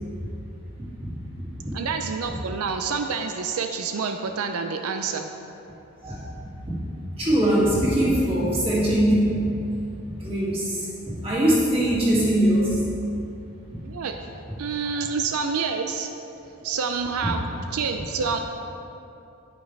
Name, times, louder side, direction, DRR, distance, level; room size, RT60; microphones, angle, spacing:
voice 1, 1.7-5.3 13.8-14.1 14.6-16.1 16.6-18.4, right 5 dB, 90° right, 5 dB, 0.5 m, -28 dB
voice 2, 7.2-9.6 10.2-10.9 11.2-12.8 18.2-18.3, right 1 dB, 25° right, -8 dB, 2.3 m, -21 dB
9.5 x 9.3 x 3.3 m, 2.8 s
head